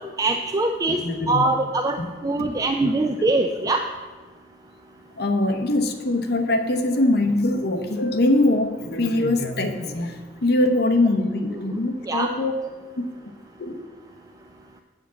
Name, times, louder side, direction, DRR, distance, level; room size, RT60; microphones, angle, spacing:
voice 1, 0.2-1.0 1.3-2.0 2.2-3.8 12.1-12.3, right 2 dB, 20° right, 4 dB, 0.4 m, -22 dB
voice 2, 0.9-1.4 2.0-2.1 2.4-2.5 2.8-2.9 5.2-12.5 13.6-13.7, left 2 dB, 60° left, 6 dB, 0.9 m, -22 dB
8.2 x 4.9 x 7.4 m, 1.3 s
head